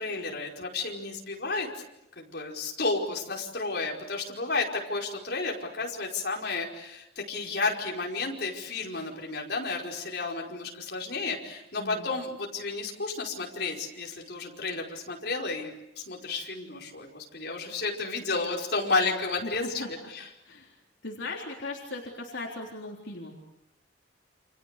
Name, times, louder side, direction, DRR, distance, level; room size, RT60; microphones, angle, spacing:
voice 1, 0.0-1.8 2.2-19.7 20.1-20.2, left 3 dB, 55° left, -1 dB, 5.1 m, -32 dB
voice 2, 11.8-12.1 19.4-19.9 20.4-20.8 21.0-23.4, left 2 dB, 75° left, -1 dB, 3.7 m, -38 dB
29.5 x 27.0 x 6.8 m, 0.85 s
head